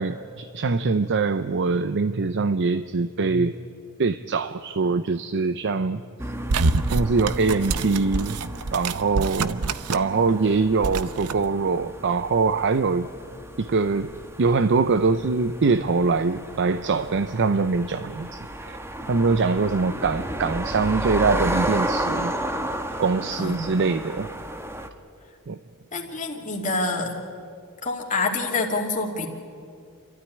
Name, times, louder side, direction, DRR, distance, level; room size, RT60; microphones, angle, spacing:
voice 1, 0.0-3.5 4.0-6.0 6.9-8.4 8.7-9.6 9.9-13.1 13.6-14.1 14.4-18.8 19.1-22.3 23.0-24.4 25.5-25.6, right 4 dB, 55° right, 12 dB, 0.6 m, -23 dB
sound 1, 6.2-24.9, right 1 dB, 10° right, 1.1 m, -33 dB
sound 2, 6.5-10.2 10.5-11.4, right 3 dB, 90° right, 0.7 m, -26 dB
voice 2, 25.9-27.1 27.8-29.3, left 3 dB, 35° left, 0 dB, 2.7 m, -26 dB
28.5 x 13.0 x 9.9 m, 2.4 s
head